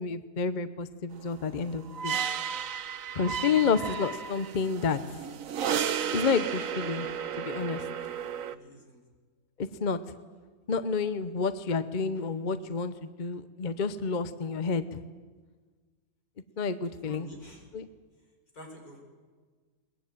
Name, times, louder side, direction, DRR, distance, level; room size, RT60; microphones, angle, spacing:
voice 1, 0.0-2.2 3.1-5.0 6.1-7.1 7.4-7.8 9.6-10.0 10.7-14.8 16.6-17.3 17.7-17.9, left 5 dB, 40° left, 13 dB, 0.8 m, -29 dB
sound 1, 1.3-8.6, right 8 dB, 65° right, 1.2 m, -33 dB
voice 2, 8.5-9.0 17.0-17.7 18.5-19.0, equal, 80° left, 1 dB, 5.6 m, -48 dB
21.5 x 20.5 x 9.1 m, 1.4 s
omnidirectional pair, 1.6 m